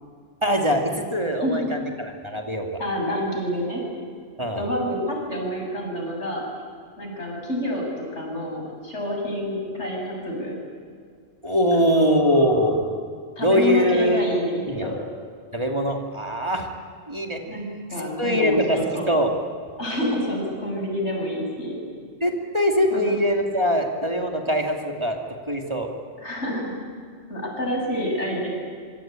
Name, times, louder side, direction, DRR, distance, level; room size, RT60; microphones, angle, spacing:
voice 1, 0.4-2.7 4.4-4.6 11.4-12.8 13.4-14.3 14.7-14.9 15.5-16.7 17.1-17.4 18.2-19.3 22.2-25.2 25.5-25.9, equal, 25° right, 2 dB, 2.6 m, -22 dB
voice 2, 2.8-3.8 4.5-6.4 7.0-7.8 8.1-10.5 11.7-12.8 13.4-15.0 17.5-17.6 17.9-19.1 19.8-21.8 22.9-23.2 26.2-26.7 27.3-28.5, equal, 80° left, 0 dB, 7.5 m, -28 dB
26.0 x 24.0 x 9.0 m, 2.1 s
omnidirectional pair, 1.2 m